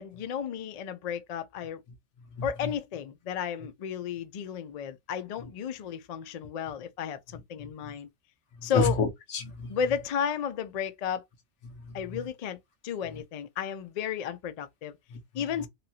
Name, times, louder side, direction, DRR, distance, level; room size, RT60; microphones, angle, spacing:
voice 1, 0.0-1.8 2.4-8.1 8.6-9.0 9.7-11.2 11.9-15.0 15.3-15.7, left 8 dB, 90° left, 0.3 m, -33 dB
voice 2, 2.3-2.7 7.6-7.9 8.6-9.8 11.6-12.2 15.1-15.4, left 3 dB, 70° left, 1.1 m, -32 dB
2.9 x 2.4 x 2.7 m
omnidirectional pair, 1.2 m